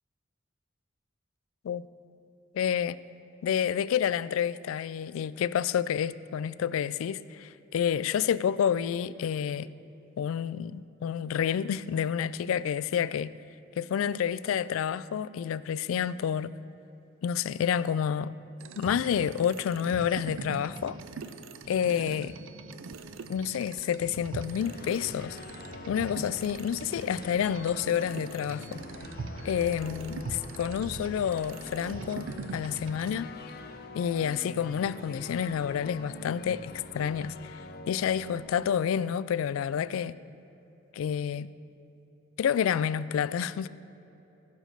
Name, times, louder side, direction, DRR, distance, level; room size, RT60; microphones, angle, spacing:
voice 1, 2.5-3.0 3.4-9.7 10.2-13.3 13.8-16.5 17.2-18.3 18.8-21.0 21.7-22.3 23.3-25.4 25.9-28.8 29.4-32.3 32.5-33.3 33.9-37.6 37.9-40.2 40.9-41.5 42.4-43.7, left 8 dB, 80° left, 0.3 m, -29 dB
sound 1, 18.6-33.1, right 4 dB, 70° right, 0.5 m, -42 dB
sound 2, 24.4-38.4, left 2 dB, 50° left, 0.6 m, -44 dB
15.0 x 5.1 x 6.5 m
head